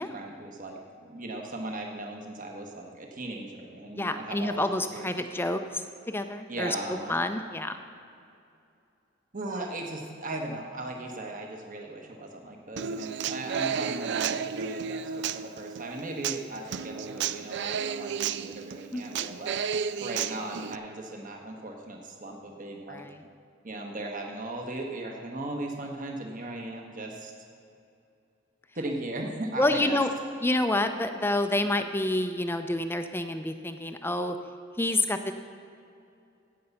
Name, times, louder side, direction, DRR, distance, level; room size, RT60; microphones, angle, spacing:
voice 1, 0.0-5.2 6.5-7.1 9.3-19.6 20.0-23.0 23.6-27.3 28.7-30.0, right 2 dB, 40° right, 1 dB, 1.2 m, -37 dB
voice 2, 4.0-6.8 7.1-7.7 18.9-19.3 22.9-23.2 29.6-30.1 30.4-34.4 34.8-35.3, left 1 dB, 10° left, 8 dB, 0.6 m, -28 dB
Human voice / Acoustic guitar, 12.8-20.8, right 7 dB, 60° right, 0.4 m, -32 dB
16.5 x 5.5 x 7.1 m, 2.5 s
head